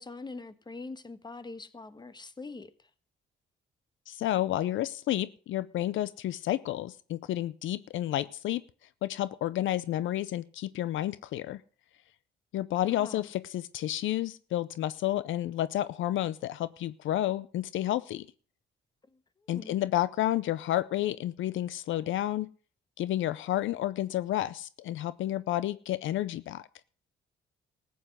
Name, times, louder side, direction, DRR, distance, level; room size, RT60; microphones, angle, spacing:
voice 1, 0.0-2.9 12.8-13.3 19.0-19.8, left 3 dB, 20° left, 1.4 m, -44 dB
voice 2, 4.1-8.6 9.0-11.6 12.5-18.3 19.5-22.5 23.0-26.7, left 13 dB, 75° left, 0.6 m, -30 dB
14.5 x 8.0 x 7.9 m
cardioid pair, 90°, 20 cm